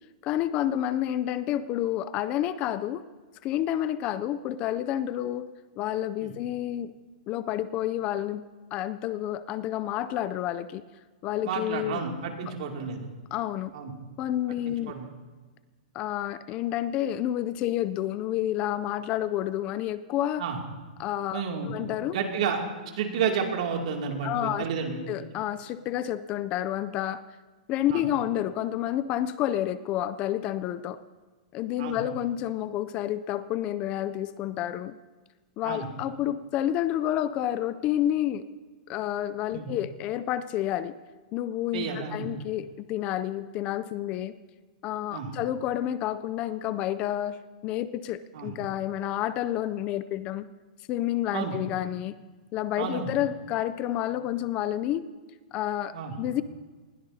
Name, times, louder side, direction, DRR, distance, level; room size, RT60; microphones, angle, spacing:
voice 1, 0.2-3.0 3.4-5.5 5.8-6.9 7.3-8.4 8.7-10.8 11.2-12.1 12.4-12.5 13.3-13.7 14.2-14.9 15.9-20.5 21.0-22.2 24.2-24.7 25.1-27.2 27.7-31.0 31.5-35.0 35.6-38.4 38.9-40.9 41.3-44.3 44.8-50.5 50.9-52.1 52.5-55.1 55.5-56.4, left 12 dB, 25° left, 15 dB, 0.4 m, -29 dB
voice 2, 11.4-13.1 13.7-13.9 14.5-15.1 20.4-20.6 21.3-21.7 22.1-22.6 23.0-25.0 27.9-28.0 31.8-32.0 35.6-35.9 39.5-39.7 41.7-42.3 45.1-45.3 48.3-48.5 51.3-51.6 52.8-53.1 55.9-56.1, right 6 dB, 60° right, 1 dB, 2.5 m, -31 dB
20.5 x 16.5 x 2.8 m, 1.4 s
hypercardioid pair, 160°, 4 cm